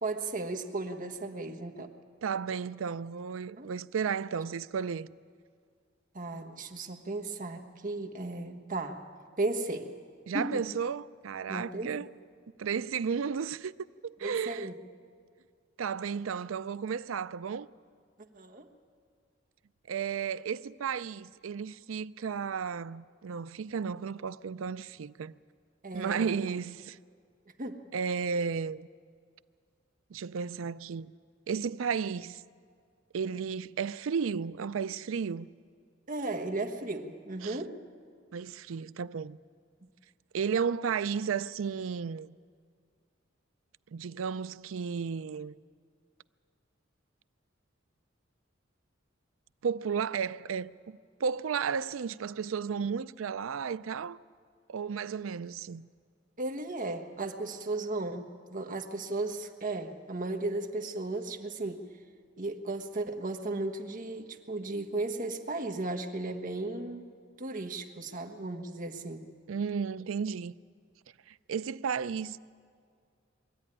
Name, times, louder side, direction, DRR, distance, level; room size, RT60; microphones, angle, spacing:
voice 1, 0.0-1.9 3.6-3.7 6.1-9.0 9.4-9.9 10.3-10.7 11.5-11.9 14.2-14.7 18.3-18.7 25.8-26.4 27.6-27.9 36.1-37.8 39.8-39.9 56.4-61.8 62.4-67.1 67.4-69.3, right 2 dB, 45° right, 1.3 m, -35 dB
voice 2, 2.2-5.1 10.3-12.1 12.6-13.7 14.0-14.7 15.8-17.7 19.9-25.3 25.9-27.0 27.9-28.9 30.1-31.1 31.5-32.4 33.1-35.5 37.4-37.6 38.3-39.4 40.3-42.3 43.9-45.5 49.6-54.2 54.7-55.9 69.5-70.5 71.3-72.4, right 6 dB, 80° right, 0.4 m, -33 dB
22.0 x 14.0 x 9.8 m
head